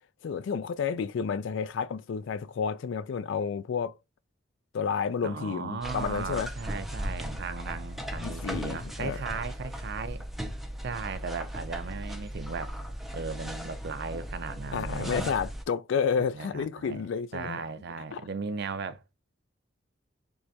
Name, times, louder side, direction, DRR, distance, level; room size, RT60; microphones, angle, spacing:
voice 1, 0.2-3.9 4.7-6.5 8.2-9.2 14.7-17.6 18.1-18.2, left 6 dB, 70° left, 0.3 m, -30 dB
voice 2, 5.2-10.2 10.8-12.8 13.1-15.3 16.2-17.0 17.3-19.0, right 5 dB, 60° right, 0.5 m, -37 dB
sound 1, 5.8-15.6, equal, ahead, 0.5 m, -37 dB
4.6 x 3.2 x 2.6 m
head